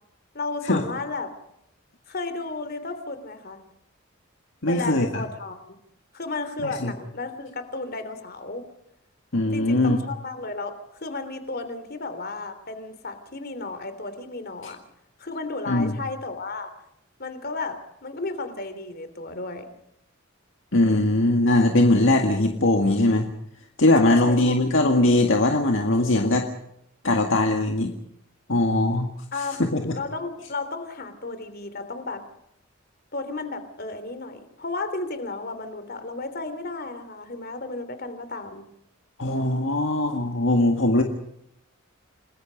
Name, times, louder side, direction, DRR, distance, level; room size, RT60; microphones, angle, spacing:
voice 1, 0.3-1.3 2.1-3.6 4.7-5.6 6.1-8.6 9.5-10.7 11.0-14.8 15.2-16.7 17.2-17.8 18.0-19.6 24.0-24.6 29.3-29.6 29.9-32.2 33.1-38.6, left 3 dB, 50° left, 10 dB, 3.1 m, -33 dB
voice 2, 4.6-5.2 6.6-6.9 9.3-10.0 14.6-14.7 15.7-15.9 20.7-23.3 23.8-26.5 27.0-27.9 28.5-29.1 29.7-30.0 39.2-41.0, left 2 dB, 65° left, 3 dB, 1.9 m, -20 dB
29.0 x 20.5 x 5.2 m, 0.77 s
head